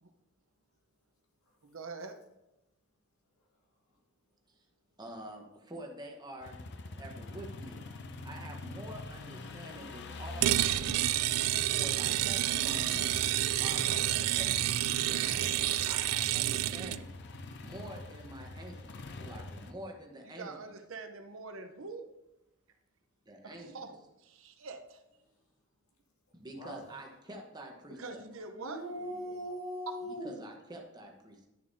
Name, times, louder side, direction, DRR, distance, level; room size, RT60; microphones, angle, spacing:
voice 1, 1.6-2.2 20.2-22.1 23.4-25.0 27.9-28.8 29.9-30.0, right 4 dB, 60° right, 6 dB, 0.8 m, -44 dB
voice 2, 5.0-6.7 7.0-7.9 8.2-11.0 11.7-13.1 13.6-14.7 15.8-17.1 17.6-20.7 23.3-23.8 26.3-28.2 30.0-31.4, right 1 dB, 20° right, 1 dB, 1.1 m, -47 dB
sound 1, 6.4-19.7, left 2 dB, 50° left, 0.6 m, -44 dB
sound 2, 10.4-17.0, right 14 dB, 85° right, 0.3 m, -29 dB
voice 3, 28.6-30.4, equal, 85° left, 0 dB, 2.0 m, -39 dB
11.5 x 6.6 x 2.7 m, 0.94 s
head